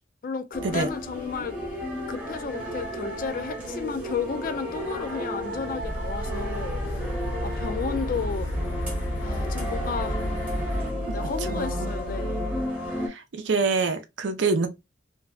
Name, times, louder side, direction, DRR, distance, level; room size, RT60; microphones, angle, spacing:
voice 1, 0.2-1.6 2.1-7.1 7.4-8.5 9.2-10.2 11.1-12.5, left 5 dB, 45° left, 0.3 m, -33 dB
sound 1, 0.5-13.1, equal, 5° right, 0.8 m, -34 dB
sound 2, 5.4-10.9, equal, 80° left, 0.8 m, -34 dB
sound 3, 5.8-12.6, left 1 dB, 45° right, 0.8 m, -33 dB
voice 2, 11.5-11.9 13.0-14.7, right 4 dB, 75° right, 0.5 m, -26 dB
2.6 x 2.1 x 2.2 m
head